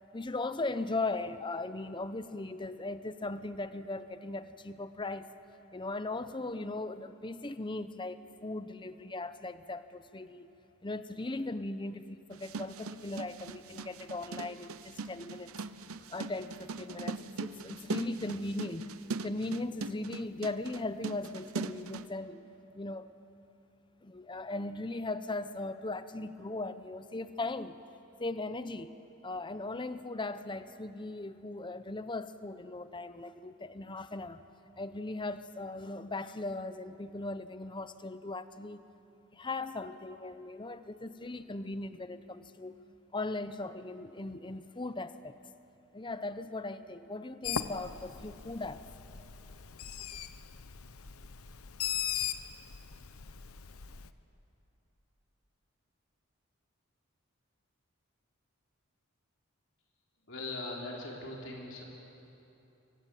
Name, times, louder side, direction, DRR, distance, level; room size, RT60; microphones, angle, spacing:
voice 1, 0.1-5.3 5.7-10.5 10.8-15.5 16.1-18.9 19.2-22.4 22.7-23.1 24.0-27.8 28.2-28.9 29.2-34.4 34.8-38.8 39.3-42.8 43.1-45.4 45.9-48.8, left 2 dB, 20° left, 0.8 m, -38 dB
sound 1, 12.3-22.1, right 4 dB, 80° right, 0.8 m, -40 dB
Bird, 47.4-54.1, left 8 dB, 90° left, 0.9 m, -39 dB
voice 2, 60.3-61.8, left 2 dB, 60° left, 4.3 m, -40 dB
25.0 x 23.5 x 8.6 m
head